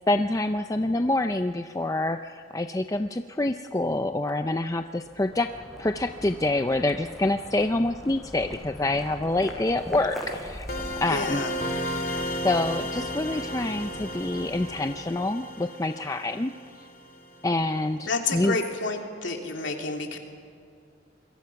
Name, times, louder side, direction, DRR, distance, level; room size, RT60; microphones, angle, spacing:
voice 1, 0.1-5.5 5.8-10.6 11.0-11.4 12.4-16.5 17.4-18.6, left 2 dB, 15° left, 7 dB, 0.5 m, -26 dB
sound 1, 4.8-15.5, equal, ahead, 6.0 m, -42 dB
sound 2, 10.7-17.4, equal, 50° left, 2.0 m, -34 dB
voice 2, 11.1-11.5 18.1-20.2, left 3 dB, 80° left, 2 dB, 2.8 m, -29 dB
27.5 x 22.5 x 5.9 m, 2.4 s
head